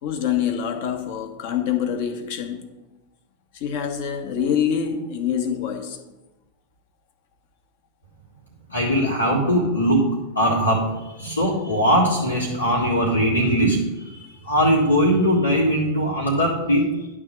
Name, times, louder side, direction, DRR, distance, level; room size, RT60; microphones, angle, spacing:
voice 1, 0.0-2.7 3.5-6.0 14.2-14.3, left 8 dB, 50° left, 1.2 m, -25 dB
voice 2, 8.7-17.1, equal, 80° left, 1.5 m, -21 dB
11.0 x 3.8 x 6.7 m
figure-of-eight pair, 90°, 0 cm